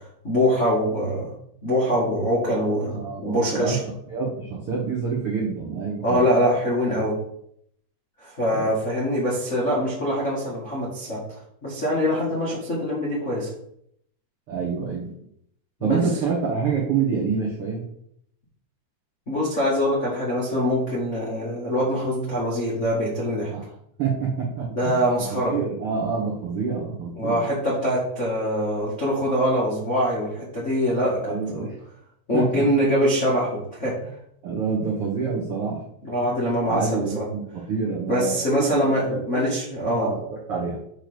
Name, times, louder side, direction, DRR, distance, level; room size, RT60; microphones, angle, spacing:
voice 1, 0.2-1.3 1.6-3.8 6.0-7.2 8.2-11.2 11.6-13.5 15.8-16.0 19.3-23.5 24.8-25.5 27.1-31.7 32.3-34.0 36.0-37.2 38.1-40.1, equal, 75° left, -7 dB, 0.6 m, -24 dB
voice 2, 2.9-3.8 4.1-6.3 8.5-8.7 14.5-15.1 15.8-17.8 23.5-23.7 24.0-25.1 25.5-27.4 31.2-31.7 32.3-32.7 34.4-35.8 36.2-36.3 36.7-39.5 39.8-40.8, right 5 dB, 75° right, -5 dB, 1.3 m, -27 dB
8.7 x 3.4 x 6.2 m, 0.71 s
omnidirectional pair, 5.0 m